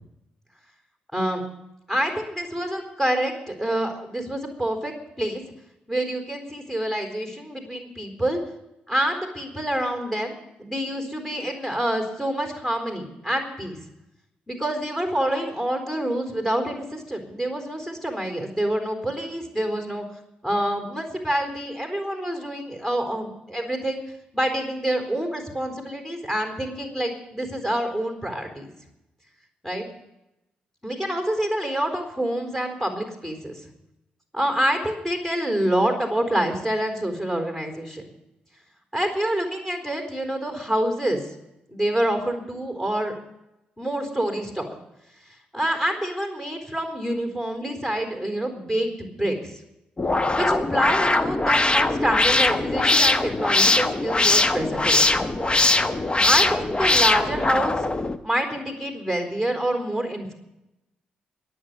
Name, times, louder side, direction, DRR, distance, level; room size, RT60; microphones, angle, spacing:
voice 1, 1.1-1.4 1.9-5.4 5.9-8.4 8.9-13.8 14.5-20.1 20.4-24.0 24.3-28.7 29.6-29.9 30.8-33.7 34.3-38.0 38.9-41.2 41.7-43.2 43.8-44.8 45.5-49.5 50.3-55.3 56.2-57.9 58.2-60.3, right 1 dB, 5° left, 3 dB, 4.1 m, -27 dB
sound 1, 50.0-58.2, left 2 dB, 25° left, 1.0 m, -21 dB
22.0 x 7.6 x 6.8 m, 0.89 s
hypercardioid pair, 40°, 4 cm